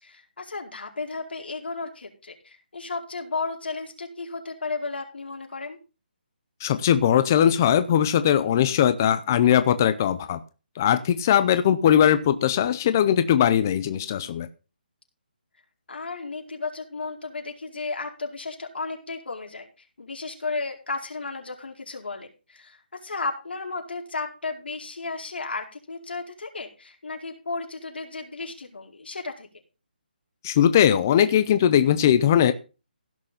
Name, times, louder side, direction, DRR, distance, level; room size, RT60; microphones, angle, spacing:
voice 1, 0.0-5.8 15.9-19.7 20.0-29.5, left 3 dB, 80° left, 3 dB, 4.8 m, -34 dB
voice 2, 6.6-10.4 10.8-14.5 30.4-32.5, left 9 dB, 15° left, 12 dB, 0.5 m, -20 dB
16.5 x 6.6 x 5.8 m, 0.32 s
hypercardioid pair, 180°, 6 cm